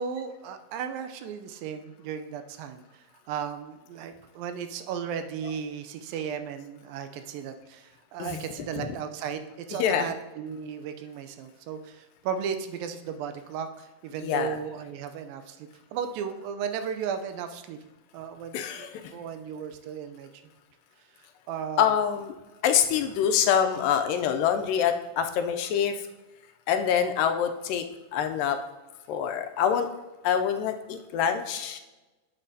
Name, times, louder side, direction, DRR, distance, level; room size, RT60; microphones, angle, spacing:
voice 1, 0.0-17.8 18.1-20.3 21.5-21.9, right 7 dB, 80° right, 8 dB, 2.3 m, -35 dB
voice 2, 9.8-10.1 14.2-14.6 18.5-19.1 21.8-22.4 22.6-26.0 26.7-27.9 28.1-28.6 29.1-29.9 30.2-31.8, left 8 dB, 80° left, 7 dB, 2.1 m, -25 dB
9.8 x 7.3 x 2.7 m, 1.1 s
omnidirectional pair, 4.1 m